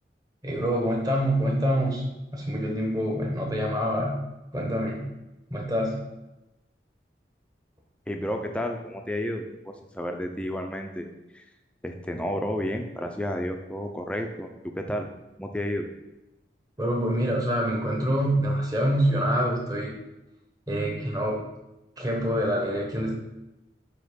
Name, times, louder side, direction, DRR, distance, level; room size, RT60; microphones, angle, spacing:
voice 1, 0.4-2.0 2.3-4.2 4.5-5.1 5.5-6.0 16.8-19.9 20.7-21.4 22.0-23.1, equal, 20° right, 0 dB, 1.2 m, -26 dB
voice 2, 8.1-9.4 9.9-11.1 11.3-11.4 11.8-15.1 15.4-15.9, left 1 dB, 5° left, 4 dB, 0.5 m, -31 dB
7.9 x 3.0 x 5.1 m, 0.97 s
head